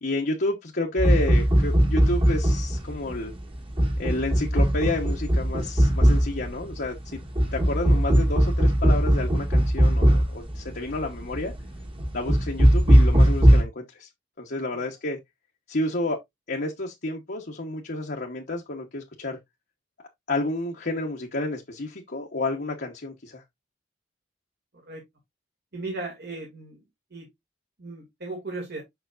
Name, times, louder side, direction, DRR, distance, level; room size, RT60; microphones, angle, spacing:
voice 1, 0.0-3.3 4.0-7.2 7.5-11.5 12.1-14.1 14.4-15.2 15.7-16.2 16.5-19.4 20.3-23.4, left 2 dB, 55° left, 1.2 m, -30 dB
sound 1, 1.0-13.6, equal, 30° right, 1.7 m, -20 dB
voice 2, 25.7-26.8 27.1-27.3 27.8-28.8, right 2 dB, 60° right, 2.3 m, -36 dB
6.9 x 6.0 x 2.5 m
head